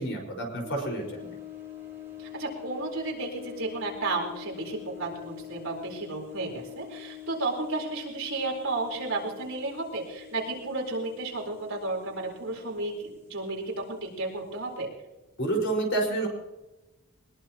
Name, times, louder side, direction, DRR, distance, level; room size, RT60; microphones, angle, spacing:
voice 1, 0.0-1.3 15.4-16.3, right 2 dB, 55° left, 2 dB, 5.3 m, -29 dB
sound 1, 0.6-14.8, left 12 dB, 10° right, 4.9 m, -45 dB
voice 2, 2.2-14.9, right 2 dB, 60° right, -1 dB, 4.4 m, -33 dB
22.0 x 21.0 x 3.0 m, 1.0 s
head